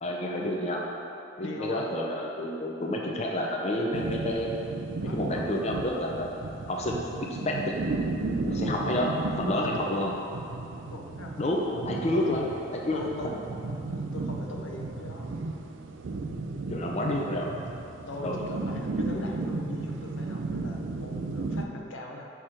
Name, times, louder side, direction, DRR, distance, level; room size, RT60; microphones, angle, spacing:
voice 1, 0.0-0.8 1.4-4.5 5.1-6.3 6.7-7.0 7.3-7.6 8.4-10.1 11.4-12.5 12.9-13.3 16.7-17.5 18.2-18.4, left 1 dB, 35° left, -1 dB, 0.6 m, -29 dB
voice 2, 1.4-1.9 5.0-5.5 8.5-8.9 9.5-10.2 10.8-11.4 11.7-11.9 12.1-12.4 12.9-13.5 13.9-15.3 18.1-22.3, left 2 dB, 80° left, 0 dB, 0.7 m, -40 dB
sound 1, 3.9-21.7, right 3 dB, 75° right, 0.5 m, -34 dB
5.8 x 4.6 x 5.0 m, 2.7 s
head